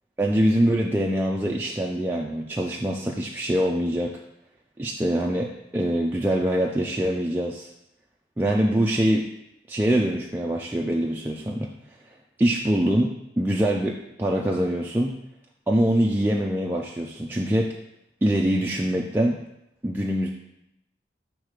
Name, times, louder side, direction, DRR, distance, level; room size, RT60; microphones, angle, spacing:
voice 1, 0.2-4.2 4.8-7.7 8.4-9.3 9.7-11.7 12.4-15.1 15.7-17.8 18.2-19.4 19.8-20.3, right 1 dB, 10° right, -1 dB, 0.3 m, -24 dB
6.2 x 3.2 x 4.9 m, 0.83 s
head